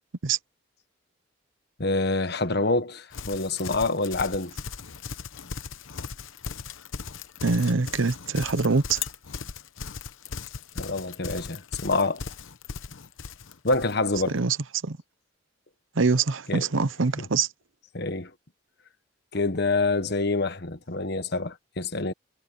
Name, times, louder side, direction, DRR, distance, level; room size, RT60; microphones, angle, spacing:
voice 1, 1.8-4.5 10.7-12.3 13.6-14.4 16.5-16.7 17.2-17.3 17.9-18.3 19.3-22.1, left 3 dB, 55° left, 1.3 m, -26 dB
Livestock farm animals working animals, 3.1-14.3, left 5 dB, 75° left, 0.9 m, -38 dB
voice 2, 7.4-9.0 14.3-14.6 14.8-15.0 16.0-17.5, right 4 dB, 75° right, 0.9 m, -24 dB
head